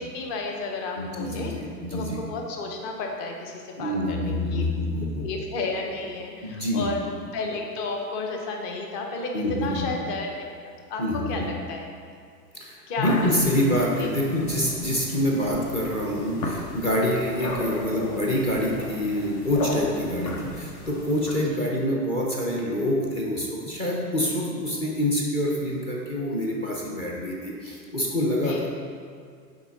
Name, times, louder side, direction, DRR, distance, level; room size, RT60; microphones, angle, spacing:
voice 1, 0.0-1.5 1.9-4.6 5.2-7.0 7.3-10.5 10.8-11.0 11.3-11.9 12.9-13.1 13.7-14.1 28.4-28.7, left 3 dB, 35° left, 1 dB, 0.8 m, -32 dB
voice 2, 0.9-2.2 3.8-5.2 6.4-6.9 9.3-9.8 11.0-11.5 12.5-28.7, left 1 dB, 15° left, -3 dB, 0.4 m, -26 dB
sound 1, 13.0-21.3, left 2 dB, 65° left, 1.3 m, -36 dB
6.0 x 4.4 x 4.1 m, 2.2 s
hypercardioid pair, 130°, 49 cm